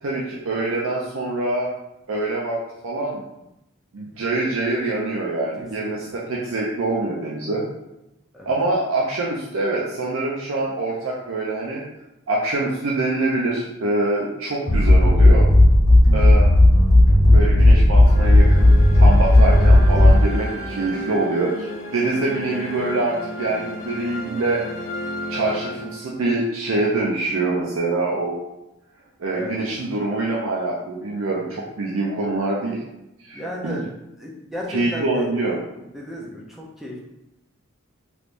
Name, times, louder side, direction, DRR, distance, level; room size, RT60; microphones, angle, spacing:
voice 1, 0.0-1.7 2.1-3.2 3.9-7.7 8.5-11.8 12.3-15.5 16.1-16.5 17.2-24.6 25.3-28.4 29.2-32.8 33.2-33.9 34.7-35.6, right 2 dB, 75° right, -4 dB, 0.5 m, -25 dB
voice 2, 5.6-6.1 8.3-8.5 29.3-29.7 31.5-31.6 33.3-33.8 34.2-35.3 35.9-37.0, equal, ahead, -3 dB, 0.5 m, -34 dB
sound 1, 14.7-20.5, left 1 dB, 90° left, 1.1 m, -13 dB
sound 2, 18.0-26.4, left 1 dB, 70° left, 0.6 m, -33 dB
3.3 x 3.1 x 2.5 m, 0.89 s
head